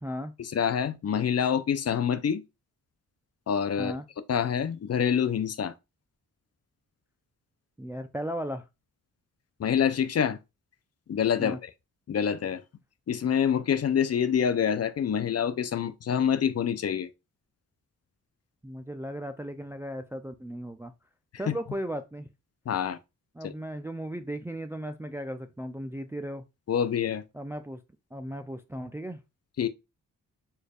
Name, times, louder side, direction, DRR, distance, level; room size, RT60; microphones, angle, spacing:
voice 1, 0.0-0.3 3.8-4.1 7.8-8.7 11.4-11.6 18.6-20.9 21.4-22.3 23.3-26.4 27.3-27.8 28.1-29.2, equal, 5° right, 0.4 m, -36 dB
voice 2, 0.5-2.4 3.5-3.9 4.3-5.7 9.6-10.4 11.1-11.7 12.1-12.6 13.1-17.1 21.5-21.6 22.7-23.0 23.4-23.5 26.7-27.2 29.6-29.7, left 8 dB, 45° left, 0.5 m, -26 dB
4.4 x 3.3 x 2.3 m
cardioid pair, 55°, 35 cm